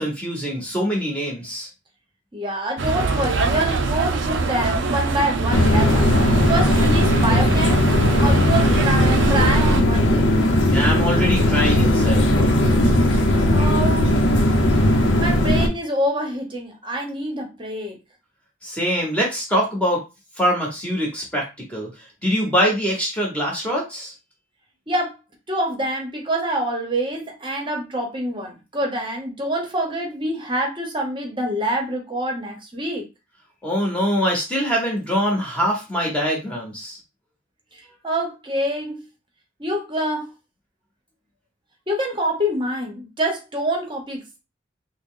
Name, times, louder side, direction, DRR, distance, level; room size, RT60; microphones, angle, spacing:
voice 1, 0.0-1.7 10.7-12.3 18.6-20.0 20.4-21.9 22.2-24.1 33.6-37.0, equal, 5° left, -2 dB, 1.0 m, -23 dB
voice 2, 2.3-6.1 6.5-7.8 8.2-10.3 13.5-14.2 15.2-18.0 24.9-25.1 25.5-33.0 38.0-39.0 39.6-40.3 41.9-44.4, right 1 dB, 25° right, 1 dB, 0.9 m, -26 dB
sound 1, 2.8-9.8, right 3 dB, 65° right, 0.5 m, -23 dB
sound 2, 5.5-15.7, left 1 dB, 70° left, 0.7 m, -18 dB
3.6 x 2.1 x 3.7 m, 0.27 s
head